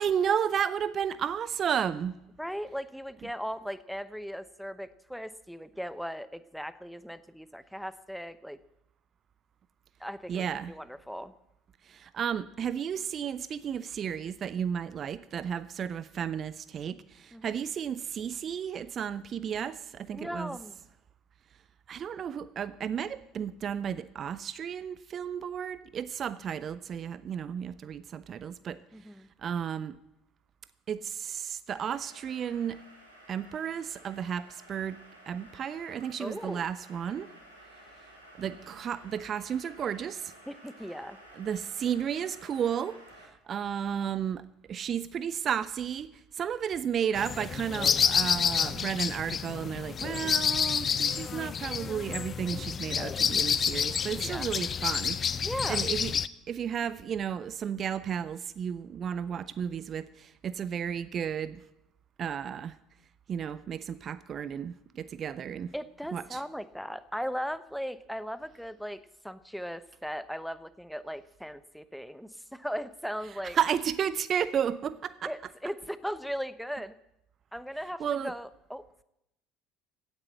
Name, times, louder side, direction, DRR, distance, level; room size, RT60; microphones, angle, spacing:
voice 1, 0.0-2.2 10.3-10.7 11.9-20.6 21.9-28.8 29.4-30.0 30.9-32.8 33.3-35.0 35.3-37.3 38.4-40.3 41.3-46.1 46.3-56.1 56.5-61.6 62.2-62.7 63.3-65.7 66.1-66.4 73.5-75.3 78.0-78.3, right 8 dB, 40° right, 16 dB, 0.6 m, -33 dB
voice 2, 2.4-8.6 10.0-11.3 17.3-17.5 20.1-20.7 28.9-29.3 36.2-36.7 40.5-41.2 54.2-54.5 55.4-55.8 65.7-73.6 75.2-76.9 77.5-79.0, equal, ahead, 15 dB, 0.9 m, -38 dB
sound 1, 31.7-43.3, right 1 dB, 90° right, 4.0 m, -53 dB
sound 2, 47.1-56.3, left 7 dB, 35° left, 0.6 m, -29 dB
16.5 x 9.8 x 8.0 m, 0.85 s
figure-of-eight pair, 60°, 0 cm